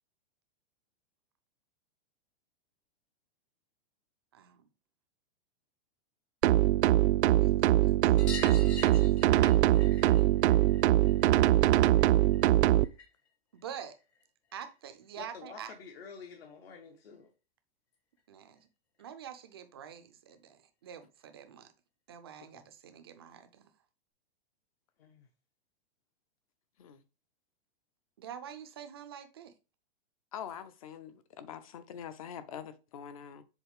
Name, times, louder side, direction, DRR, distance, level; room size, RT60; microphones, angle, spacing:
voice 1, 4.3-4.6 7.2-9.2 13.5-14.0 14.5-15.7 18.3-18.7 19.0-21.7 22.1-23.7 28.2-29.5, right 8 dB, 25° right, 0.4 m, -47 dB
sound 1, 6.4-12.9, right 14 dB, 90° right, 0.5 m, -23 dB
sound 2, 8.2-13.3 13.6-14.7 16.1-16.2 16.4-16.5 16.8-16.9 18.2-18.3 18.6-18.7 19.0-19.1 20.3-20.4 21.2-21.3, left 6 dB, 80° left, 2.3 m, -46 dB
voice 2, 15.2-17.3 25.0-25.3, left 5 dB, 65° left, 1.2 m, -49 dB
voice 3, 30.3-33.4, left 8 dB, 35° left, 0.5 m, -44 dB
7.0 x 3.9 x 3.5 m
supercardioid pair, 175°, 32 cm